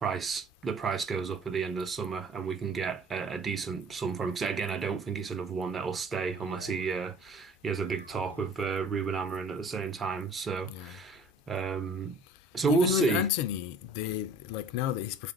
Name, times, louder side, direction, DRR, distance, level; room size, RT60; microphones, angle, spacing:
voice 1, 0.0-12.2 12.5-13.3, right 5 dB, 20° right, 0.5 m, -32 dB
sound 1, 6.3-7.3 7.6-8.7, left 2 dB, 85° left, 0.7 m, -50 dB
voice 2, 10.6-11.0 12.7-15.3, left 13 dB, 45° left, 0.3 m, -31 dB
3.7 x 3.3 x 4.3 m
figure-of-eight pair, 90°, 0 cm